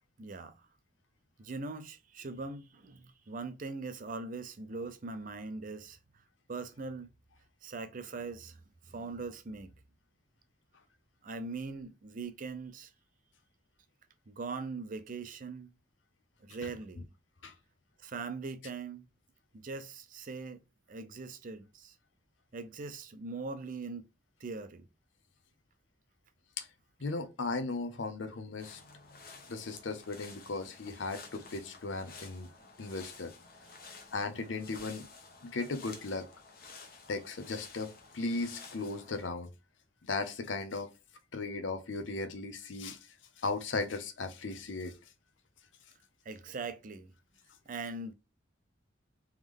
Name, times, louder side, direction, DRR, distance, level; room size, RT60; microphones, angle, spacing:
voice 1, 0.2-0.7 1.4-6.0 6.5-7.1 7.6-9.7 11.2-12.9 14.3-15.7 16.4-17.0 18.0-19.1 19.5-20.6 20.9-22.0 22.5-24.1 24.4-24.8 33.8-34.0 46.3-47.1 47.7-48.1, right 3 dB, 45° right, 0.5 m, -41 dB
voice 2, 27.0-28.8 29.5-32.5 32.8-33.3 34.1-35.1 35.4-36.3 37.1-39.5 40.1-40.9 41.3-43.0 43.4-44.9, left 3 dB, 90° left, 0.7 m, -36 dB
sound 1, 28.6-39.3, left 4 dB, 55° left, 0.9 m, -52 dB
3.5 x 3.1 x 3.6 m
head